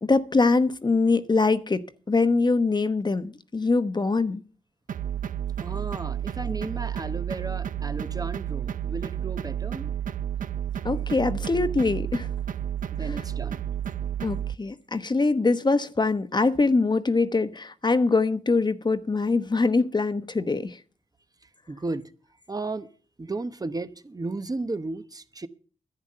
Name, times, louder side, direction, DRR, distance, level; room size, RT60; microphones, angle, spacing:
voice 1, 0.0-4.4 10.8-12.3 14.2-20.8, left 3 dB, 35° left, 1.0 m, -23 dB
sound 1, 4.9-14.6, right 10 dB, 80° right, 0.6 m, -31 dB
voice 2, 5.6-9.9 12.9-13.6 21.4-22.1 22.5-22.9 23.2-25.5, right 3 dB, 30° right, 1.0 m, -34 dB
11.0 x 9.5 x 6.7 m
cardioid pair, 65°, 14 cm